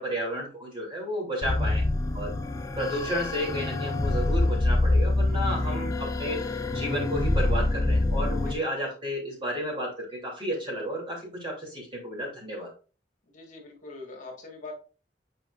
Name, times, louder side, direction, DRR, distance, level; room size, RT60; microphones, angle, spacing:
voice 1, 0.0-1.9 2.1-2.3 2.8-12.7, equal, 30° right, -3 dB, 2.9 m, -32 dB
sound 1, 1.4-8.5, left 2 dB, 20° left, 0.5 m, -26 dB
voice 2, 1.6-1.9 5.6-5.8 8.4-8.8 13.3-14.7, left 3 dB, 45° left, 0 dB, 1.7 m, -44 dB
7.5 x 5.0 x 2.5 m, 0.35 s
head